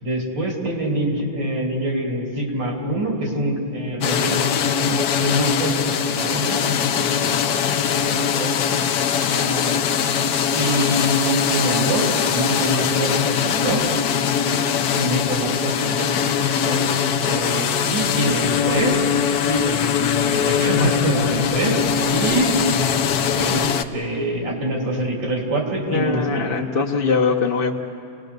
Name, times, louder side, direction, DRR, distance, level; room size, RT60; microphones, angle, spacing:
voice 1, 0.0-4.4 4.8-8.5 9.2-9.8 10.5-14.0 14.5-16.1 16.6-16.9 17.3-19.1 19.4-21.8 22.1-22.6 23.4-23.7 23.9-26.5, right 1 dB, 80° right, -1 dB, 3.8 m, -25 dB
sound 1, 4.0-23.8, left 8 dB, 65° left, 1.2 m, -21 dB
voice 2, 20.8-21.3 21.6-21.8 25.9-27.7, left 5 dB, 40° left, 0 dB, 0.8 m, -23 dB
29.5 x 19.0 x 6.7 m, 2.5 s
omnidirectional pair, 2.0 m